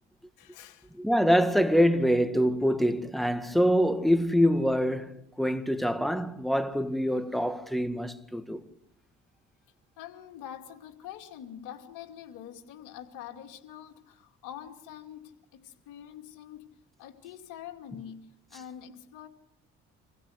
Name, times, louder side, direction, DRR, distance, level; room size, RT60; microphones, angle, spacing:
voice 1, 0.4-0.9 10.0-16.7 17.0-19.3, left 10 dB, 85° left, 2.5 m, -45 dB
voice 2, 0.9-8.7, equal, ahead, 1.9 m, -25 dB
26.0 x 16.0 x 8.0 m
supercardioid pair, 70°, 30 cm